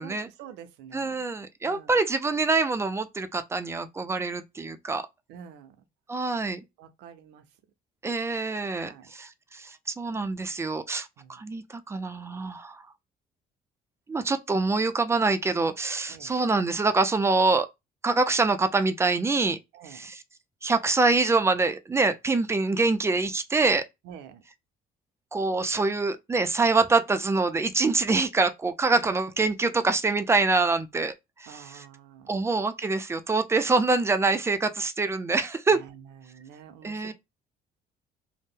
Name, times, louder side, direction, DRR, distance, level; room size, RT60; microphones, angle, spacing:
voice 1, 0.0-1.3 1.6-2.0 5.3-5.9 6.8-7.4 8.8-9.1 11.2-11.4 16.1-16.4 19.7-20.1 24.0-24.4 31.5-32.5 35.7-37.1, right 8 dB, 90° right, 0.5 m, -47 dB
voice 2, 0.9-5.0 6.1-6.6 8.0-12.8 14.1-17.7 18.0-19.6 19.9-20.2 20.6-23.9 25.3-31.1 31.4-31.8 32.3-35.8 36.8-37.1, right 3 dB, 15° right, 0.4 m, -25 dB
2.6 x 2.1 x 3.5 m
cardioid pair, 110°, 17 cm